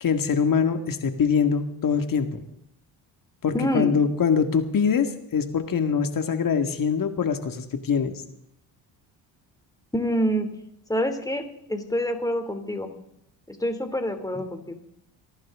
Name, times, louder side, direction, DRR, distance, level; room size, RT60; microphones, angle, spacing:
voice 1, 0.0-2.4 3.4-8.2, left 6 dB, 50° left, 8 dB, 2.2 m, -23 dB
voice 2, 3.5-3.9 9.9-10.5 10.9-12.9 13.5-14.7, equal, 10° left, 7 dB, 3.0 m, -26 dB
29.5 x 11.5 x 3.8 m, 0.75 s
supercardioid pair, 75°, 44 cm